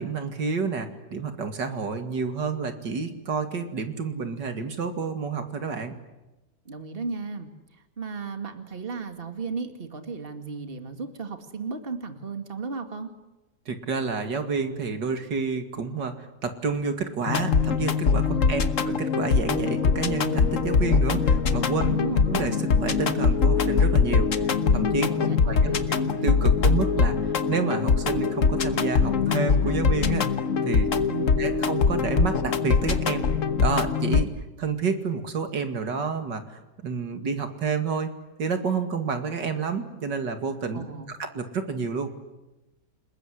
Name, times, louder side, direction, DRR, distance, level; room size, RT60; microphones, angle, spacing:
voice 1, 0.0-5.9 13.7-21.8 22.3-30.3 30.6-30.9 31.4-33.3 33.6-34.3 34.6-38.1 38.4-42.1, right 5 dB, 85° right, 7 dB, 2.8 m, -29 dB
voice 2, 6.7-7.5 8.0-13.1 18.3-18.7 21.8-22.3 25.1-25.9 31.0-31.5 40.7-41.1, right 4 dB, 30° right, 7 dB, 2.3 m, -35 dB
sound 1, 17.3-34.2, left 5 dB, 50° left, 1.5 m, -23 dB
29.0 x 21.0 x 9.9 m, 1.1 s
omnidirectional pair, 1.8 m